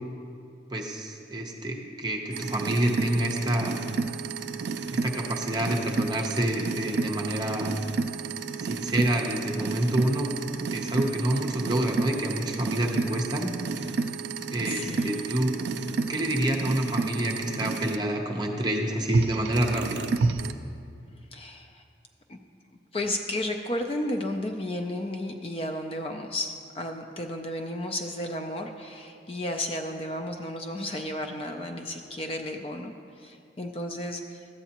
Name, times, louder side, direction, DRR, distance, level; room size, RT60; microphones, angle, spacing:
voice 1, 0.7-3.8 4.9-7.7 8.6-10.3 10.7-13.5 13.9-14.0 14.5-15.5 16.1-20.1, right 1 dB, 25° right, 0 dB, 0.8 m, -28 dB
sound 1, 2.3-18.0 19.1-20.5, right 4 dB, 70° right, 0.4 m, -31 dB
voice 2, 14.7-15.3 21.3-21.8 22.3-22.4 22.9-34.5, left 1 dB, 30° left, 5 dB, 0.4 m, -33 dB
13.0 x 8.0 x 2.9 m, 2.4 s
head